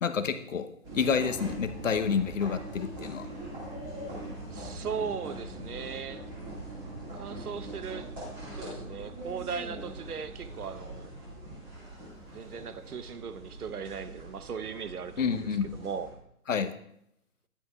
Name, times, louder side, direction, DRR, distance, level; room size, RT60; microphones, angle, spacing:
voice 1, 0.0-0.7 0.9-3.3 15.2-15.7 16.5-16.7, left 6 dB, 60° left, 10 dB, 1.0 m, -28 dB
sound 1, 0.8-16.1, right 1 dB, 10° right, 2.0 m, -42 dB
voice 2, 4.5-6.2 7.1-8.1 8.5-11.1 12.3-16.1, right 6 dB, 85° right, 12 dB, 1.0 m, -38 dB
14.0 x 10.5 x 2.4 m, 0.74 s
hypercardioid pair, 170°, 44 cm